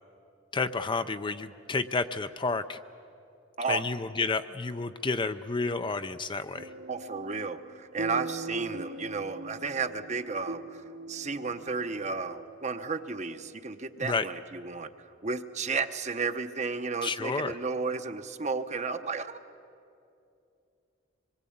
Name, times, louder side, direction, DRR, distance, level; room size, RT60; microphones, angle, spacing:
voice 1, 0.5-2.8 3.7-6.7 14.0-14.2 17.0-17.5, left 4 dB, 25° left, 10 dB, 0.5 m, -30 dB
sound 1, 6.6-13.6, right 2 dB, 60° right, 1.1 m, -42 dB
voice 2, 6.9-10.8 11.1-14.9 15.2-19.4, right 4 dB, 35° right, 9 dB, 0.9 m, -33 dB
25.0 x 22.0 x 8.6 m, 2.6 s
head